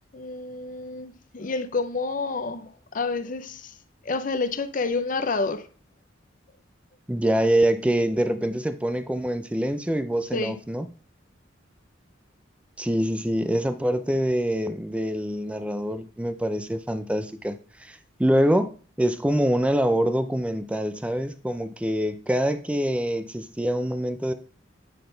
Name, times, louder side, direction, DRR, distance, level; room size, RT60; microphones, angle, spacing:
voice 1, 0.1-2.7 2.9-3.7 4.0-5.6 10.3-10.5, left 3 dB, 45° left, 0.6 m, -28 dB
voice 2, 7.1-10.9 12.8-18.7 19.0-24.3, right 1 dB, 5° right, 0.4 m, -25 dB
8.5 x 4.1 x 3.8 m
head